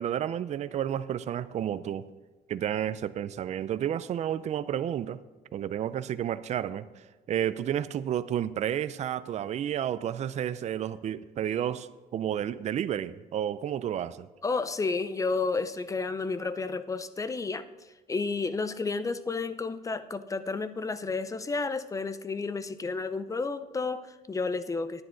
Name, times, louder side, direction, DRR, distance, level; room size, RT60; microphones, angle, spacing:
voice 1, 0.0-2.0 2.5-5.2 5.5-6.9 7.3-11.9 12.1-14.3, right 10 dB, 45° right, 0.4 m, -31 dB
voice 2, 14.4-17.7 18.1-25.0, left 4 dB, 20° left, 0.5 m, -31 dB
10.0 x 9.7 x 3.9 m
cardioid pair, 110°, 17 cm